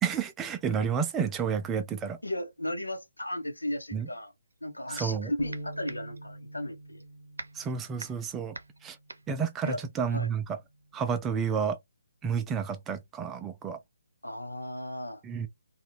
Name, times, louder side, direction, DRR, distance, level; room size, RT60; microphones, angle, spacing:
voice 1, 0.0-2.2 3.9-4.1 4.9-5.3 7.6-8.5 8.8-9.0 9.3-10.4 10.9-11.8 12.2-13.8 15.2-15.5, right 6 dB, 15° right, 0.4 m, -30 dB
voice 2, 2.2-4.3 4.6-7.0 9.6-9.8 10.1-10.3 14.2-15.2, left 1 dB, 90° left, 0.9 m, -35 dB
sound 1, 4.4-5.2 5.5-10.5, right 3 dB, 75° right, 0.6 m, -45 dB
sound 2, 5.4-11.6, right 1 dB, 50° left, 0.9 m, -47 dB
2.8 x 2.3 x 3.1 m
figure-of-eight pair, 140°, 0 cm